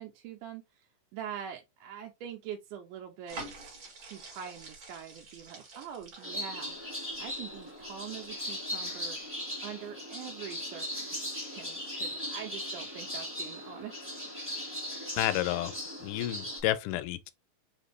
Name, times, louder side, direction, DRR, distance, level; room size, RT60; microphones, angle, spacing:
voice 1, 0.0-9.3 9.6-13.9, right 9 dB, 90° right, 2.2 m, -44 dB
sound 1, 3.3-8.6 9.1-9.2, right 3 dB, 45° right, 2.0 m, -48 dB
sound 2, 6.2-16.6, equal, 10° right, 0.7 m, -38 dB
voice 2, 15.2-15.7 16.0-17.2, left 15 dB, 85° left, 2.1 m, -30 dB
5.0 x 2.6 x 3.2 m
omnidirectional pair, 3.6 m